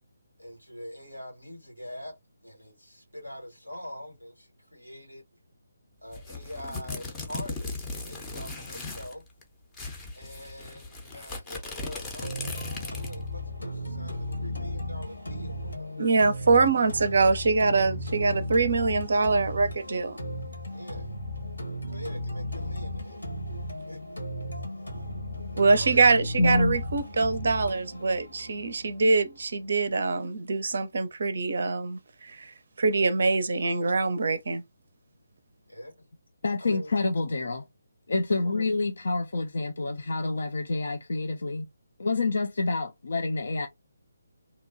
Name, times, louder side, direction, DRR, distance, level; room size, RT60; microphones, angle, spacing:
voice 1, 0.4-2.1 2.4-5.2 6.0-9.2 10.1-15.9 16.8-16.9 20.7-21.1 21.9-23.2 23.9-24.2 24.8-25.1 25.5-26.0 35.7-36.1 36.6-36.9 38.3-38.7, left 1 dB, 90° left, 1.7 m, -44 dB
sound 1, 6.1-9.1 9.4-9.5 9.7-13.3, left 3 dB, 10° left, 0.6 m, -38 dB
sound 2, 12.2-30.2, left 1 dB, 70° left, 1.1 m, -36 dB
voice 2, 16.0-20.2 25.6-34.6, right 4 dB, 50° right, 0.5 m, -24 dB
voice 3, 26.4-26.8 36.4-37.6 38.1-41.7 42.0-43.7, left 3 dB, 55° left, 0.4 m, -27 dB
2.8 x 2.2 x 2.6 m
figure-of-eight pair, 145°, 0 cm